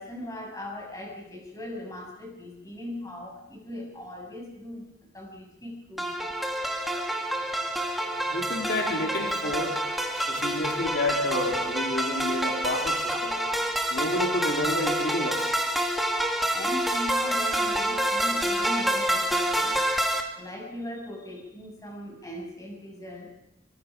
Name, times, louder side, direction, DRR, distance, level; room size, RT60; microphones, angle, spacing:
voice 1, 0.0-6.1 16.5-19.8 20.4-23.3, left 1 dB, 20° left, 1 dB, 7.2 m, -39 dB
sound 1, 6.0-20.2, right 1 dB, ahead, 2.1 m, -27 dB
voice 2, 8.3-13.4 13.9-15.5, left 1 dB, 75° left, 0 dB, 3.3 m, -30 dB
24.0 x 24.0 x 5.1 m, 0.90 s
head